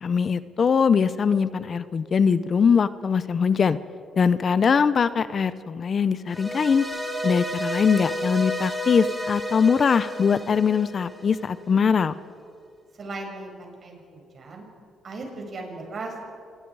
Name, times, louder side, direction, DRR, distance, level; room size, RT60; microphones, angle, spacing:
voice 1, 0.0-3.8 4.2-6.9 7.2-12.1, left 6 dB, 45° left, 15 dB, 0.7 m, -22 dB
sound 1, 6.3-11.5, equal, 5° right, 3.5 m, -31 dB
voice 2, 12.9-14.6 15.0-16.3, right 2 dB, 50° right, 1 dB, 6.2 m, -37 dB
26.5 x 21.0 x 4.8 m, 2.4 s
cardioid pair, 90°, 0 cm